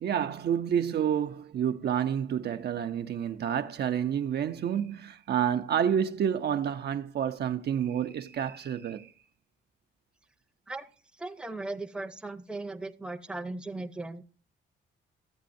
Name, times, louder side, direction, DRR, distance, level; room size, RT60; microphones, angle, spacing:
voice 1, 0.0-9.1, right 9 dB, 55° right, 0.6 m, -29 dB
voice 2, 11.2-14.2, right 2 dB, 5° right, 0.7 m, -37 dB
14.0 x 8.3 x 2.6 m
cardioid pair, 90°, 20 cm